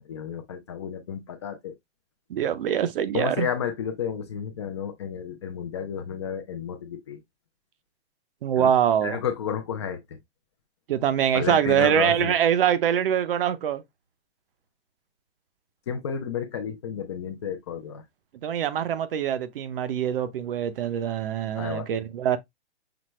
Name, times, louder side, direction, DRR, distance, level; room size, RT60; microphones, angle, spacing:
voice 1, 0.0-1.7 3.1-7.2 8.6-8.7 9.0-10.2 11.3-12.3 15.9-18.0 21.6-21.9, left 7 dB, 25° left, 0.4 m, -32 dB
voice 2, 2.3-3.5 8.4-9.2 10.9-13.8 18.4-22.4, right 9 dB, 55° right, 0.6 m, -24 dB
5.9 x 2.1 x 3.1 m
hypercardioid pair, 155°, 34 cm